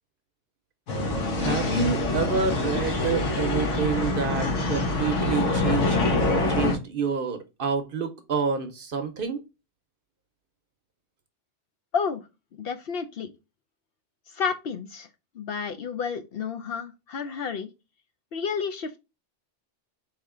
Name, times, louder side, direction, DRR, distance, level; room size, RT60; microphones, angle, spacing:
sound 1, 0.9-6.8, left 2 dB, 85° left, 1.3 m, -25 dB
voice 1, 1.4-6.0 6.5-9.4, right 5 dB, 55° right, 0.8 m, -28 dB
voice 2, 12.5-13.3 14.3-15.1 15.3-17.7 18.3-19.0, left 6 dB, 65° left, 0.7 m, -31 dB
4.4 x 3.2 x 3.6 m
omnidirectional pair, 1.2 m